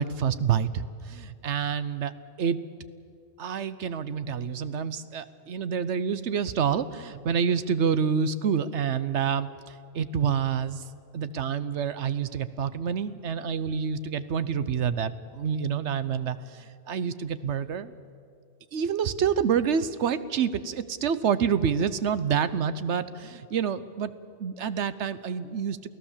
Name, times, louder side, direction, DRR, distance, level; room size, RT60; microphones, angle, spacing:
voice 1, 0.0-2.1 2.4-2.6 3.4-10.8 11.1-17.9 18.7-24.1 24.4-25.9, right 7 dB, 75° right, 14 dB, 1.1 m, -28 dB
28.5 x 16.5 x 7.3 m, 2.3 s
omnidirectional pair, 1.2 m